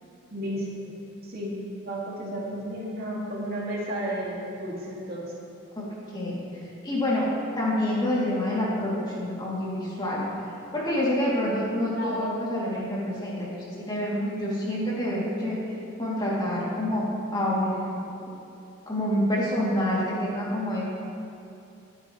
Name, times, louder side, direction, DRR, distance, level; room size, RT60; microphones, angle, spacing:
voice 1, 0.3-0.9 1.2-1.6 1.8-5.3 11.9-12.4, right 1 dB, 45° right, -5 dB, 2.4 m, -33 dB
voice 2, 6.1-7.2 7.6-10.2 10.7-15.6 16.0-17.0 17.3-17.9 18.9-20.8, left 1 dB, 20° left, -7 dB, 2.9 m, -27 dB
23.5 x 9.8 x 3.2 m, 2.6 s
head